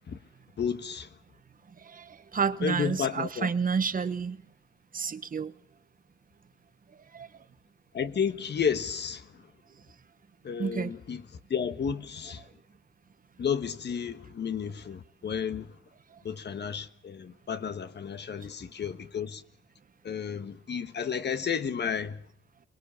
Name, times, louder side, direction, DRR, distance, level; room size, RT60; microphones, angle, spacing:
voice 1, 0.6-1.1 2.6-3.5 7.9-9.2 10.4-11.2 11.5-12.4 13.4-15.7 16.2-19.4 20.0-22.2, left 7 dB, 55° left, 1.4 m, -32 dB
voice 2, 1.8-4.4 4.9-5.5 7.1-7.3 10.6-10.9, right 6 dB, 40° right, 1.1 m, -30 dB
22.5 x 21.5 x 7.1 m
cardioid pair, 115°, 21 cm